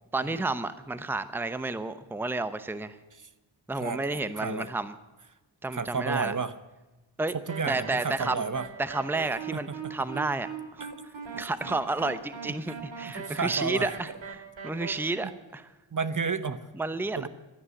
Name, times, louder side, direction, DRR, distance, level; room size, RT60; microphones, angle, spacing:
voice 1, 0.1-3.0 3.7-4.9 5.6-6.3 7.2-7.3 7.7-8.4 8.8-10.5 11.3-14.1 14.6-15.7 16.8-17.3, right 2 dB, 5° right, 12 dB, 0.8 m, -31 dB
voice 2, 3.7-4.7 5.7-6.5 7.3-8.7 9.5-9.9 10.8-11.0 12.4-12.5 13.1-14.0 15.9-16.7 17.2-17.3, right 5 dB, 40° right, 13 dB, 0.9 m, -32 dB
sound 1, 7.5-14.9, right 6 dB, 70° right, 2.4 m, -40 dB
16.0 x 11.0 x 7.7 m, 1.1 s
wide cardioid pair, 75°, 47 cm